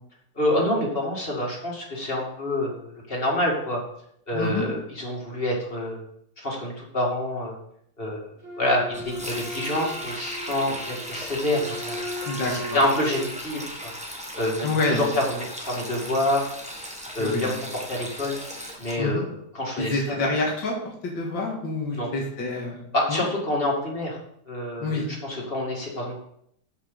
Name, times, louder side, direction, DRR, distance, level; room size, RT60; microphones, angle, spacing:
voice 1, 0.4-3.8 4.3-6.0 6.4-7.5 8.0-8.3 8.6-12.1 12.5-13.9 14.4-16.5 17.1-18.4 18.8-20.2 21.9-22.1 22.9-24.2 24.5-26.1, left 1 dB, 30° left, -2 dB, 2.4 m, -27 dB
voice 2, 4.3-4.7 12.3-12.5 14.6-15.0 17.2-17.5 19.0-19.3 19.8-20.7 21.0-22.8 23.1-23.2 24.8-25.1, left 2 dB, 75° left, -2 dB, 2.5 m, -27 dB
Wind instrument woodwind instrument, 8.4-13.3, left 1 dB, 75° right, 3.5 m, -37 dB
Sink (filling or washing), 8.9-19.0, equal, 5° right, 1.0 m, -37 dB
13.0 x 5.5 x 4.0 m, 0.71 s
omnidirectional pair, 2.0 m